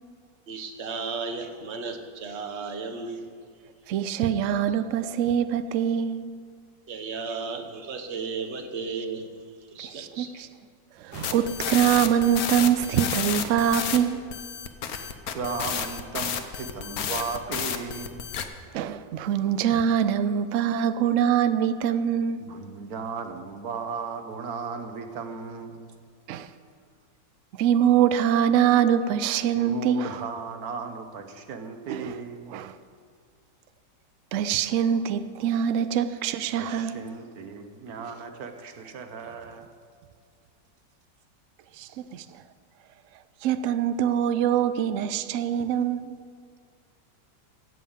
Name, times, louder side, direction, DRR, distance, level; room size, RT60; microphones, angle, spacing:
voice 1, 0.5-3.3 6.9-9.3 9.7-10.3, right 4 dB, 45° right, 1.2 m, -34 dB
voice 2, 3.9-6.3 9.8-10.5 11.0-14.2 18.7-22.4 26.3-26.5 27.6-30.1 31.9-32.1 32.5-32.7 34.3-36.9 41.8-42.2 43.4-46.2, right 9 dB, 85° right, 0.6 m, -24 dB
sound 1, 11.1-14.0 14.3-18.4, left 8 dB, 60° left, 1.2 m, -31 dB
voice 3, 15.3-18.3 22.4-25.9 29.5-32.6 36.6-39.8, right 5 dB, 60° right, 1.4 m, -36 dB
15.5 x 5.6 x 8.6 m
omnidirectional pair, 1.9 m